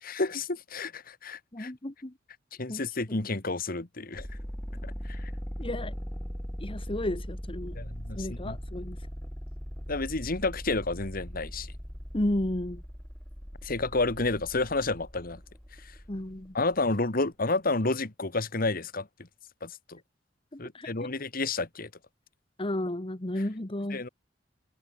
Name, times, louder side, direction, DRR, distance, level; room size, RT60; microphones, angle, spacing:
voice 1, 0.0-1.7 2.6-4.3 5.1-5.3 7.8-8.6 9.9-11.7 13.6-15.4 15.8-15.9 16.5-19.1 19.6-20.0 20.6-21.9 23.9-24.1, left 3 dB, 50° left, 1.8 m, -30 dB
voice 2, 1.5-2.1 2.7-3.2 5.6-5.9 6.6-7.8 8.1-9.0 12.1-12.8 16.1-16.5 20.5-21.1 22.6-24.0, left 1 dB, 30° left, 1.4 m, -33 dB
sound 1, 4.1-16.8, equal, 5° left, 3.9 m, -40 dB
head